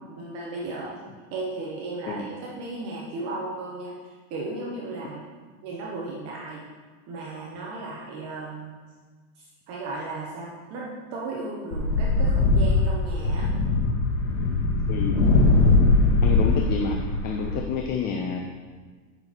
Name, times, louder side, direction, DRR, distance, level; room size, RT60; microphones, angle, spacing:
voice 1, 0.1-1.0 1.3-5.2 5.6-6.6 7.1-8.8 9.4-13.5, right 2 dB, 40° right, -3 dB, 1.2 m, -35 dB
sound 1, 11.7-17.6, left 3 dB, 70° left, 2.0 m, -21 dB
voice 2, 16.2-18.4, left 5 dB, 25° left, 2 dB, 0.5 m, -29 dB
8.8 x 6.1 x 4.4 m, 1.4 s
supercardioid pair, 145°, 40 cm